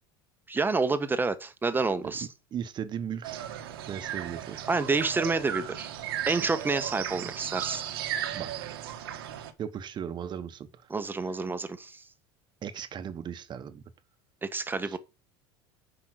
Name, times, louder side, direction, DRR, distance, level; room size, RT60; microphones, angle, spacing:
voice 1, 0.5-2.3 4.7-5.9 6.3-7.8 10.9-12.0 14.4-15.0, right 3 dB, 15° right, 1.3 m, -28 dB
voice 2, 2.0-3.4 3.9-4.6 8.3-9.2 9.6-10.7 12.6-13.8 14.8-15.0, right 8 dB, 40° right, 1.3 m, -37 dB
sound 1, 3.2-9.5, right 10 dB, 85° right, 1.5 m, -36 dB
8.6 x 5.5 x 6.5 m
supercardioid pair, 95°, 12 cm